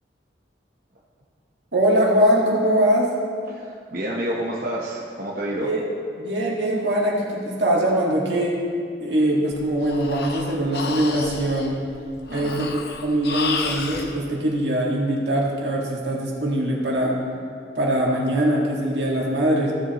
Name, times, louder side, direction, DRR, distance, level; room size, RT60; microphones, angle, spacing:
voice 1, 1.7-3.1 5.6-5.9 6.2-8.6 9.0-11.8 12.3-17.1 17.8-19.7, right 1 dB, 75° right, -3 dB, 1.9 m, -22 dB
voice 2, 3.5-5.7 12.3-12.6, right 1 dB, 50° right, -4 dB, 0.9 m, -29 dB
Breathing, 9.5-14.1, left 4 dB, 60° left, 0.7 m, -32 dB
15.0 x 7.4 x 3.0 m, 2.3 s
head